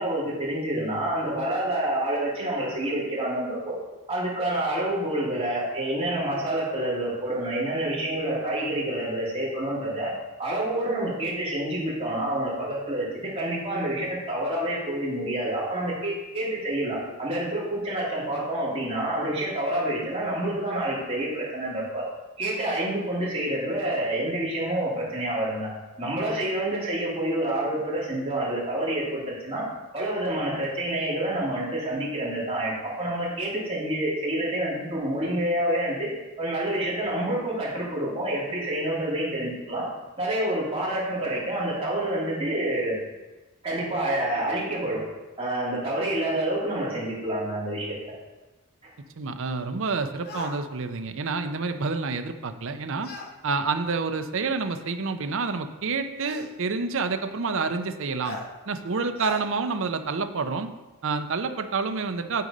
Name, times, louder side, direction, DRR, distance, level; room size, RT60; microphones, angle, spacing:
voice 1, 0.0-3.7 4.1-10.1 10.4-22.0 22.4-25.7 26.0-29.6 29.9-36.1 36.4-39.8 40.2-43.0 43.6-45.0 45.4-47.9, right 1 dB, 25° right, -7 dB, 2.7 m, -28 dB
voice 2, 49.2-53.1 53.4-58.4 58.7-60.7 61.0-62.4, right 4 dB, 60° right, 8 dB, 0.6 m, -28 dB
sound 1, 50.2-50.6 53.0-53.3 54.6-54.7 56.2-56.5 58.2-58.5 59.2-59.4, left 2 dB, 45° left, 0.9 m, -37 dB
9.3 x 3.9 x 5.3 m, 1.1 s
head